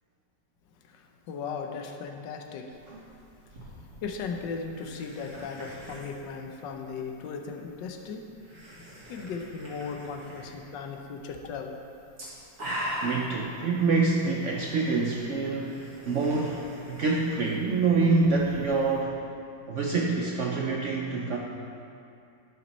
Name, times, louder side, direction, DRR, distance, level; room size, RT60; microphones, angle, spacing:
voice 1, 0.9-2.7 4.0-8.2 8.5-8.6 9.1-11.7, left 5 dB, 85° left, 3 dB, 1.4 m, -37 dB
sound 1, 2.7-19.0, equal, 45° right, 2.2 m, -43 dB
voice 2, 13.0-19.2 19.7-21.4, right 3 dB, 70° right, -1 dB, 0.7 m, -26 dB
11.0 x 6.0 x 4.1 m, 2.6 s
omnidirectional pair, 1.9 m